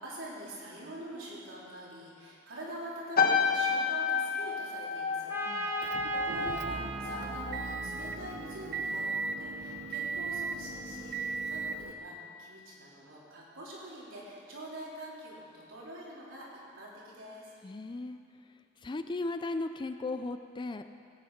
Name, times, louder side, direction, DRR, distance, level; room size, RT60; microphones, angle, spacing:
voice 1, 0.0-5.3 5.7-16.5 16.7-17.5, right 1 dB, 80° right, -6 dB, 4.1 m, -45 dB
sound 1, 3.2-7.8 8.1-8.5, left 5 dB, 50° left, 1.1 m, -30 dB
Trumpet, 5.3-9.0, right 2 dB, 15° right, 1.5 m, -38 dB
Motor vehicle (road) / Engine, 5.8-11.9, right 4 dB, 55° right, 0.6 m, -37 dB
voice 2, 17.6-18.2 18.8-20.8, left 2 dB, 25° left, 9 dB, 0.4 m, -36 dB
17.5 x 9.2 x 5.8 m, 2.4 s
head